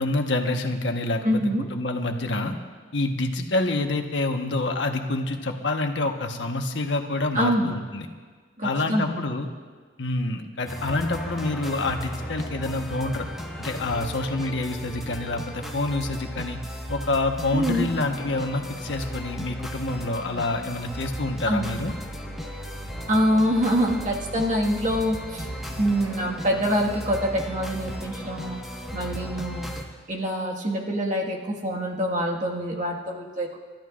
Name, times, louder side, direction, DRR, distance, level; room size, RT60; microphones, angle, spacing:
voice 1, 0.0-1.4 1.7-2.5 2.9-8.1 8.6-9.5 10.0-13.2 13.6-16.6 16.9-21.9, left 2 dB, 80° left, 4 dB, 1.2 m, -27 dB
voice 2, 1.2-1.7 7.3-7.8 8.6-9.2 17.5-17.9 21.4-21.8 23.1-25.5 25.8-28.6 28.9-29.7 30.1-33.6, equal, 45° right, -1 dB, 1.8 m, -25 dB
sound 1, 10.7-29.8, equal, ahead, 1.5 m, -36 dB
30.0 x 13.5 x 2.5 m, 1.5 s
head